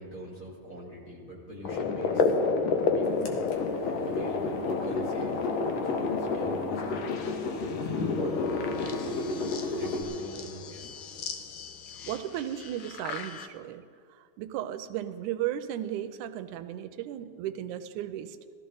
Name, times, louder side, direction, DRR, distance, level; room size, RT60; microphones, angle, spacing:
voice 1, 0.0-2.4 2.9-3.3 4.0-5.4 5.7-7.0 7.6-9.4 9.7-10.9, right 1 dB, 25° left, -6 dB, 3.3 m, -42 dB
sound 1, 1.6-13.5, left 5 dB, 85° left, 1.1 m, -32 dB
sound 2, 3.3-10.0, left 3 dB, 60° left, 2.4 m, -33 dB
voice 2, 12.0-13.8 14.1-18.4, right 11 dB, 85° right, 11 dB, 2.1 m, -35 dB
18.0 x 13.5 x 3.9 m, 2.3 s
omnidirectional pair, 3.5 m